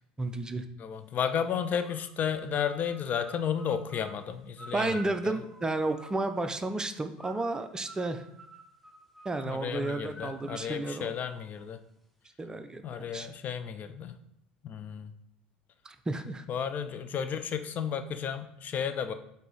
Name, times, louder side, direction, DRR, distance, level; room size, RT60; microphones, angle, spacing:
voice 1, 0.2-0.6 4.7-8.2 9.2-11.1 12.4-13.3 15.8-16.4, right 2 dB, 15° right, 8 dB, 0.6 m, -32 dB
voice 2, 0.8-5.3 9.4-11.8 12.8-14.1 14.6-15.1 16.5-19.1, left 8 dB, 40° left, 10 dB, 0.5 m, -33 dB
sound 1, 1.8-6.5 7.2-11.6, right 1 dB, 5° left, 1.1 m, -50 dB
7.8 x 2.8 x 4.7 m, 0.76 s
figure-of-eight pair, 70°, 4 cm